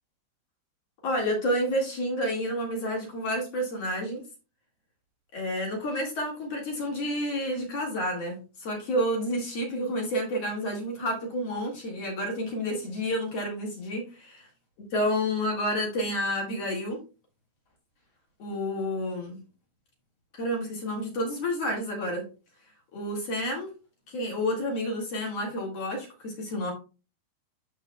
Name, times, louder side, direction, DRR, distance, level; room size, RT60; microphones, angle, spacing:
voice 1, 1.0-4.2 5.3-14.3 14.9-17.0 18.4-19.4 20.3-22.2 22.9-23.7 24.1-26.7, equal, 45° left, -1 dB, 2.5 m, -30 dB
13.0 x 4.8 x 2.2 m, 0.33 s
omnidirectional pair, 4.6 m